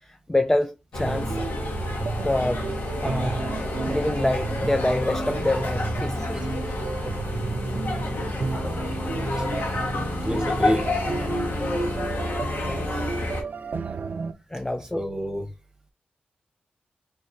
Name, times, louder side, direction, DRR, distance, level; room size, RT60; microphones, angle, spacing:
voice 1, 0.0-1.4 2.2-2.7 3.0-3.5 3.9-6.4 12.6-13.0 14.5-15.0, left 1 dB, 10° left, 0.4 m, -26 dB
sound 1, 0.9-13.4, left 2 dB, 70° left, 1.5 m, -29 dB
sound 2, 1.0-14.3, right 4 dB, 60° right, 0.5 m, -32 dB
voice 2, 10.2-10.9 14.9-15.5, equal, 20° right, 1.4 m, -28 dB
4.6 x 3.0 x 3.1 m
cardioid pair, 60°, 4 cm